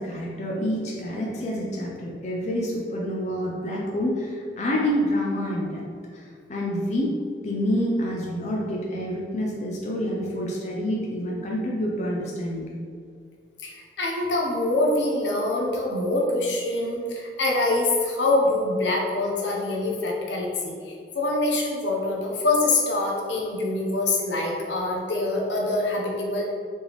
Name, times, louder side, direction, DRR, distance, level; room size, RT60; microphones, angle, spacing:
voice 1, 0.0-5.8 6.1-7.1 7.4-12.8, equal, 40° left, -3 dB, 0.5 m, -27 dB
voice 2, 13.6-26.5, left 2 dB, 80° left, -1 dB, 0.8 m, -25 dB
4.3 x 3.4 x 3.1 m, 2.2 s
head